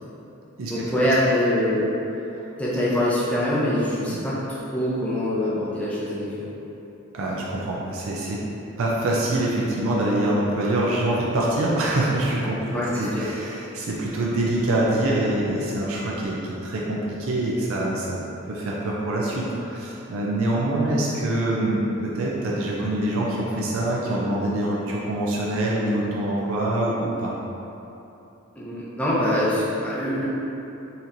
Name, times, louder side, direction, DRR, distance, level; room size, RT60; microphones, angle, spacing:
voice 1, 0.7-1.9 2.6-6.5 12.6-13.3 28.6-30.2, left 1 dB, 5° left, -9 dB, 0.5 m, -24 dB
voice 2, 7.1-8.5 8.8-18.2 18.5-27.3, right 1 dB, 75° right, -5 dB, 0.4 m, -25 dB
4.1 x 2.9 x 2.6 m, 3.0 s
head